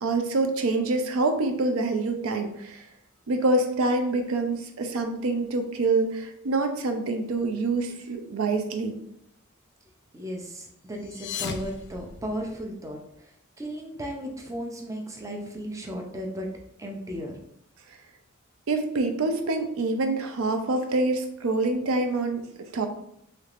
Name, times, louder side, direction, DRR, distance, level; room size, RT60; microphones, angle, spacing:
voice 1, 0.0-2.8 3.3-9.0 18.7-22.9, right 2 dB, 80° right, 6 dB, 0.4 m, -26 dB
voice 2, 10.1-16.5 16.8-17.4, equal, 15° right, 0 dB, 0.4 m, -35 dB
sound 1, 10.9-12.8, left 6 dB, 55° left, 0.4 m, -37 dB
3.2 x 3.1 x 2.4 m, 0.73 s
head